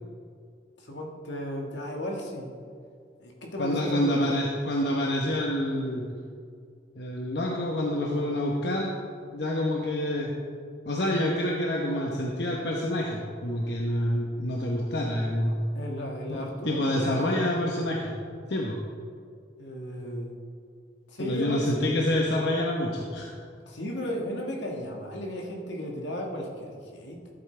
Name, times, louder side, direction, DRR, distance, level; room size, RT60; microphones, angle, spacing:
voice 1, 0.8-2.5 3.2-4.6 15.7-17.4 19.6-20.4 21.1-21.9 23.7-27.2, equal, 80° left, 0 dB, 1.7 m, -35 dB
voice 2, 3.6-6.0 7.0-8.9 9.3-10.3 10.9-15.6 16.3-18.1 18.5-18.8 21.2-23.3, left 1 dB, 65° left, -2 dB, 1.0 m, -27 dB
14.5 x 8.6 x 3.3 m, 2.2 s
head